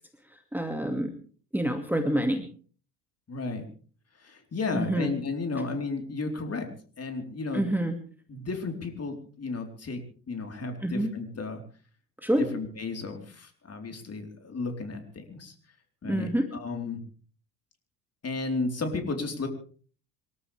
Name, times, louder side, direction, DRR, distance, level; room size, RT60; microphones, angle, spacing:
voice 1, 0.3-1.1 1.5-2.4 4.7-5.1 7.5-7.9 10.8-11.1 12.2-12.5 16.0-16.5, right 1 dB, 5° right, 5 dB, 2.3 m, -27 dB
voice 2, 3.3-3.6 4.1-6.7 7.0-7.7 8.3-10.0 10.3-11.6 12.4-15.5 16.0-17.0 18.2-19.5, left 3 dB, 30° left, 4 dB, 4.2 m, -33 dB
27.0 x 13.5 x 3.5 m, 0.43 s
figure-of-eight pair, 60°, 49 cm